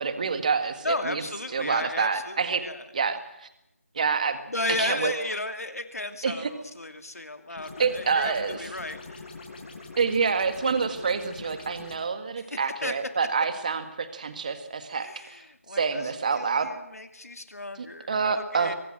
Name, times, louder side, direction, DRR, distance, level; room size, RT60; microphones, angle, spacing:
voice 1, 0.0-1.2 1.5-2.7 2.9-3.5 3.9-4.4 4.8-5.1 6.2-6.5 7.8-8.6 10.0-15.4 15.7-16.7 17.8-18.7, right 5 dB, 30° right, 9 dB, 1.9 m, -27 dB
voice 2, 0.8-3.1 4.5-9.3 12.4-13.1 15.0-18.8, left 2 dB, 80° left, 7 dB, 2.6 m, -34 dB
sound 1, 7.6-12.0, left 3 dB, 35° left, 6.3 m, -43 dB
24.5 x 18.0 x 7.7 m, 0.83 s
figure-of-eight pair, 170°, 8 cm